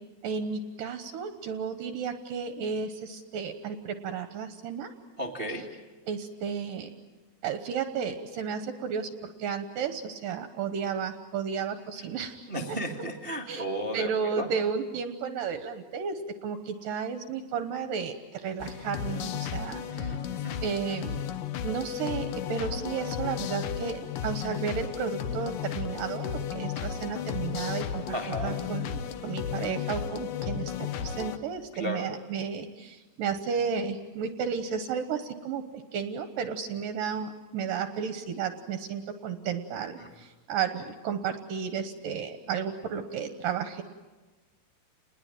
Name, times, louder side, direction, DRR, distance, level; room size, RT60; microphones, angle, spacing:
voice 1, 0.2-4.9 6.1-6.9 7.4-12.8 13.5-13.6 13.9-20.2 20.6-21.3 21.6-28.0 28.4-43.8, right 6 dB, 70° right, 8 dB, 2.4 m, -33 dB
voice 2, 5.2-5.7 12.5-14.5 19.9-20.6 28.1-28.5 31.7-32.1 40.0-40.1, right 1 dB, 40° right, 2 dB, 0.7 m, -34 dB
sound 1, 18.6-31.4, left 8 dB, 70° left, 2.3 m, -34 dB
29.5 x 21.0 x 9.0 m, 1.2 s
omnidirectional pair, 5.0 m